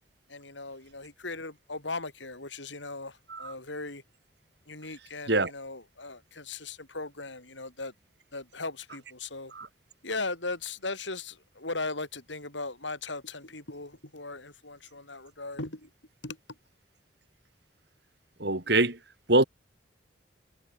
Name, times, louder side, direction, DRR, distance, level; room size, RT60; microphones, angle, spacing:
voice 1, 0.3-4.0 4.7-7.9 8.3-9.5 10.0-15.9 16.2-16.4, left 3 dB, 75° left, 6.8 m, -38 dB
voice 2, 18.4-19.0 19.3-19.4, right 2 dB, 60° right, 4.5 m, -24 dB
head